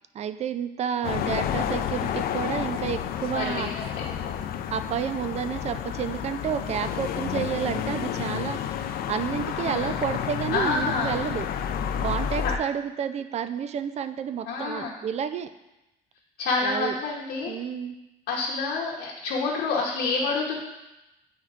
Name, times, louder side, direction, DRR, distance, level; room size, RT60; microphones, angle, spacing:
voice 1, 0.1-3.7 4.7-11.5 12.0-15.5 16.6-17.0 17.5-18.0, right 8 dB, 40° right, 11 dB, 0.4 m, -30 dB
sound 1, 1.0-12.6, left 9 dB, 65° left, 0.4 m, -30 dB
voice 2, 3.3-3.8 9.5-10.0 10.5-11.2 12.4-12.5 14.5-15.0 16.4-17.5 18.3-20.6, left 3 dB, 80° left, -3 dB, 0.9 m, -28 dB
9.3 x 4.4 x 2.4 m, 0.99 s
cardioid pair, 110°, 17 cm